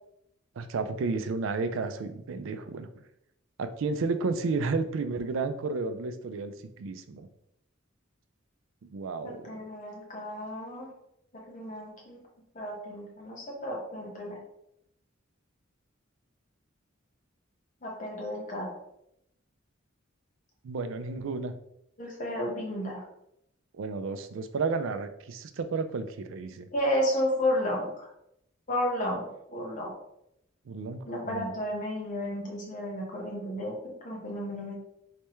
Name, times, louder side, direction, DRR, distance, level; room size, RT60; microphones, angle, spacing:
voice 1, 0.6-2.9 3.6-7.3 8.9-9.5 20.6-21.5 23.8-26.7 30.7-31.5, right 4 dB, 70° right, 9 dB, 0.4 m, -32 dB
voice 2, 9.2-10.9 11.5-12.2 12.5-14.4 17.8-18.7 22.0-23.0 26.7-28.1 28.7-29.9 31.0-34.8, left 1 dB, 40° left, -2 dB, 1.1 m, -32 dB
3.3 x 3.3 x 3.1 m, 0.79 s
head